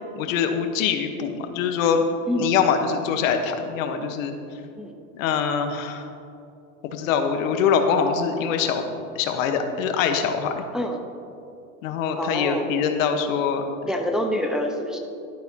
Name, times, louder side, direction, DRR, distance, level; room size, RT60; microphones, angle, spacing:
voice 1, 0.0-2.0 2.4-4.3 5.1-6.1 6.9-8.8 9.1-10.6 11.8-13.6, left 6 dB, 70° left, 6 dB, 1.2 m, -23 dB
voice 2, 12.2-12.7 13.8-15.0, equal, ahead, 2 dB, 0.9 m, -26 dB
12.0 x 11.5 x 2.8 m, 2.7 s
hypercardioid pair, 105°, 41 cm